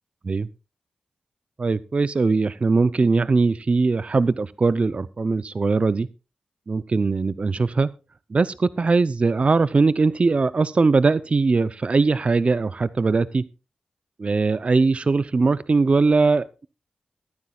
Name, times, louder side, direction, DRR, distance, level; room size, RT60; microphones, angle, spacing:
voice 1, 1.6-6.1 6.7-7.9 8.3-13.4 14.2-16.7, right 4 dB, 45° right, 16 dB, 0.5 m, -20 dB
21.5 x 9.7 x 2.3 m, 0.31 s
cardioid pair, 45°, 3 cm